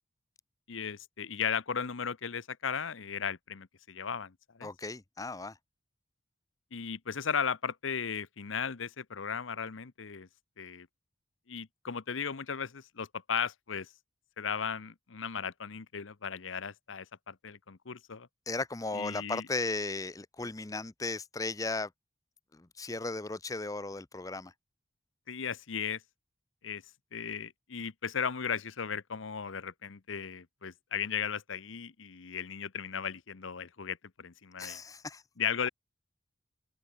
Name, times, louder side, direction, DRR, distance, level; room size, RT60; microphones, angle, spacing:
voice 1, 0.7-4.3 4.6-4.7 6.7-10.3 10.6-10.9 11.5-13.9 14.4-18.3 18.9-19.4 25.3-26.0 26.6-26.8 27.1-34.8 35.4-35.7, left 7 dB, 85° left, 0.9 m, -36 dB
voice 2, 4.6-5.6 18.5-21.9 22.5-24.5 34.6-35.2, left 3 dB, 20° left, 0.6 m, -36 dB
open air
head